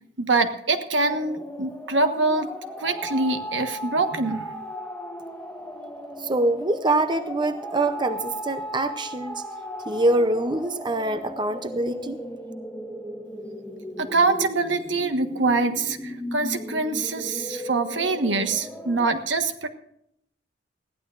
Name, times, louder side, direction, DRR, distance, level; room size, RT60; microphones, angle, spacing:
voice 1, 0.2-2.5 2.8-4.5 14.0-19.7, right 3 dB, 75° right, 7 dB, 1.4 m, -24 dB
sound 1, 1.0-19.1, equal, 5° left, 1.4 m, -36 dB
voice 2, 6.2-9.4 9.9-12.2, right 2 dB, 25° right, 9 dB, 0.6 m, -24 dB
20.5 x 15.0 x 2.5 m, 0.72 s
head